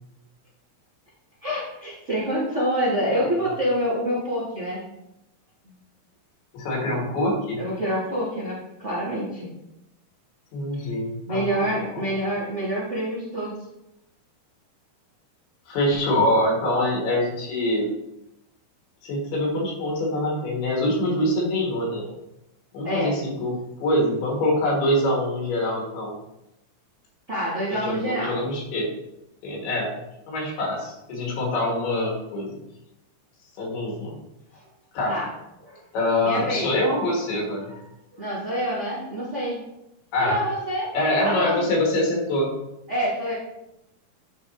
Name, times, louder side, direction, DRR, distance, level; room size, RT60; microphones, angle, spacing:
voice 1, 1.4-4.8 5.6-5.7 7.6-9.5 10.7-10.8 11.3-13.5 22.8-23.2 27.3-28.4 35.1-35.3 35.6-35.8 36.2-36.7 37.7-37.8 38.1-39.6 40.2-40.9 41.2-41.6 42.9-43.3, equal, 85° right, -9 dB, 0.6 m, -27 dB
voice 2, 6.5-7.6 10.5-12.1 15.7-17.9 19.0-22.1 22.7-26.2 27.7-28.9 29.4-29.9 30.3-32.5 33.6-34.1 34.9-35.2 35.9-37.7 40.1-40.4 40.9-42.5, left 1 dB, 85° left, -2 dB, 3.6 m, -24 dB
10.0 x 3.9 x 2.7 m, 0.87 s
omnidirectional pair, 4.4 m